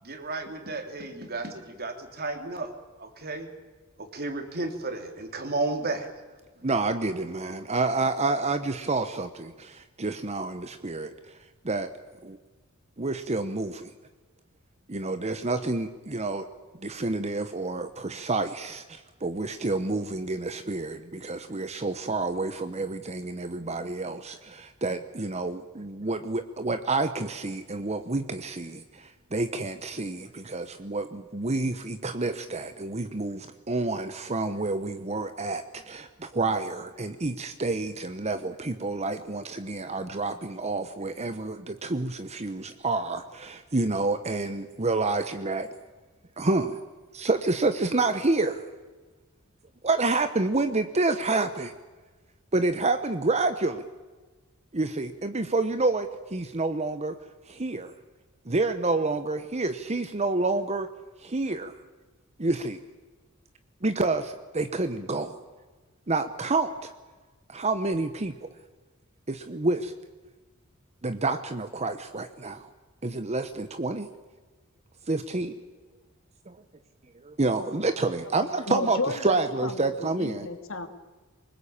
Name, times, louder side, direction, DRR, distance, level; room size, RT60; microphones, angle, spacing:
voice 1, 0.0-2.7 3.0-3.5 4.0-6.1, right 2 dB, 45° right, 5 dB, 3.3 m, -33 dB
voice 2, 6.6-11.1 11.6-11.9 12.2-12.4 13.0-13.9 14.9-16.5 16.8-45.7 46.4-46.8 47.1-48.6 49.8-51.7 52.5-53.9 54.7-57.2 57.5-57.9 58.5-60.9 61.2-61.8 62.4-62.8 63.8-65.4 66.1-66.9 67.5-68.5 69.3-69.9 71.0-72.7 73.0-74.1 75.1-75.5 76.5-76.6 77.2-80.5, right 3 dB, 30° right, 9 dB, 1.0 m, -28 dB
voice 3, 78.7-79.4 79.6-79.9 80.2-80.9, left 3 dB, 65° left, 7 dB, 2.5 m, -32 dB
24.0 x 20.5 x 8.8 m, 1.3 s
head